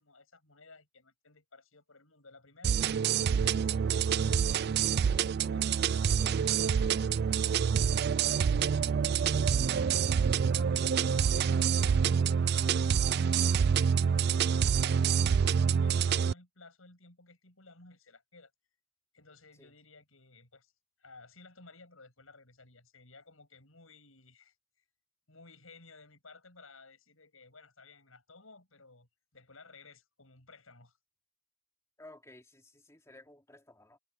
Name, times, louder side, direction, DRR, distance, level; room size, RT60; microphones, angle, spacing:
voice 1, 0.0-18.5 19.1-20.7 21.0-24.5 25.3-31.0, left 3 dB, 80° left, 6.9 m, -57 dB
sound 1, 2.6-16.3, right 7 dB, 50° right, 0.3 m, -27 dB
voice 2, 32.0-34.0, left 1 dB, 15° left, 2.9 m, -55 dB
head